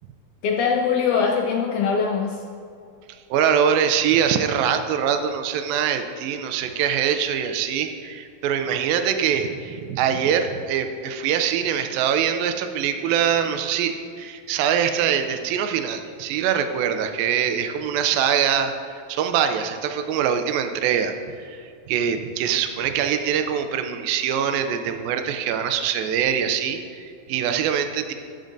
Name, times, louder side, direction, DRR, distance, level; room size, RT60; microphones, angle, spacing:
voice 1, 0.4-2.4, left 6 dB, 80° left, 0 dB, 1.8 m, -22 dB
voice 2, 3.3-18.7 19.1-21.1 21.5-21.6 21.9-28.1, right 8 dB, 85° right, 7 dB, 2.4 m, -23 dB
15.0 x 7.4 x 2.6 m, 2.5 s
omnidirectional pair, 4.1 m